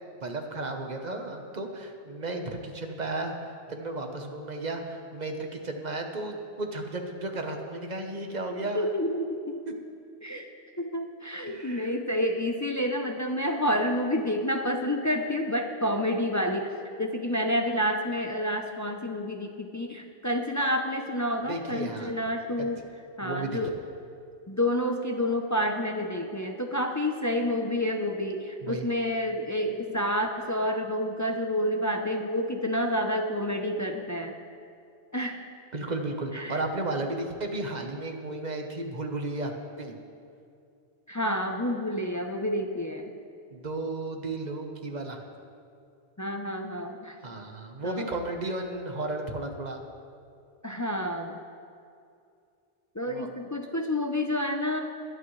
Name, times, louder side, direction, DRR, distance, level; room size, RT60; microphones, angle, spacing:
voice 1, 0.2-8.9 9.7-9.8 11.5-11.9 21.5-22.1 22.6-22.7 23.2-23.6 28.6-28.8 35.7-39.5 39.8-39.9 43.5-45.2 47.2-49.8 53.1-53.3, right 2 dB, 40° right, 4 dB, 1.1 m, -34 dB
voice 2, 8.7-9.6 10.2-10.5 10.8-22.8 23.2-23.7 24.5-34.3 35.1-35.4 36.3-36.6 41.1-43.1 46.2-47.2 47.8-48.1 50.6-51.4 52.9-54.8, equal, 25° left, 4 dB, 0.4 m, -29 dB
21.5 x 8.7 x 3.2 m, 2.5 s
omnidirectional pair, 1.2 m